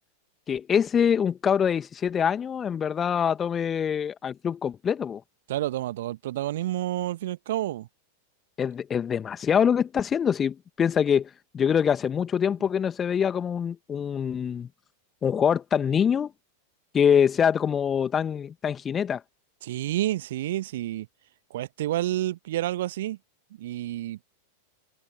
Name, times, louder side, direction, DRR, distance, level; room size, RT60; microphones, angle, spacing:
voice 1, 0.5-5.2 8.6-14.7 15.2-16.3 16.9-19.2, left 7 dB, 20° left, 2.2 m, -24 dB
voice 2, 5.5-7.9 19.6-21.1 21.5-23.2 23.6-24.2, right 14 dB, 55° right, 1.4 m, -29 dB
figure-of-eight pair, 90°, 0 cm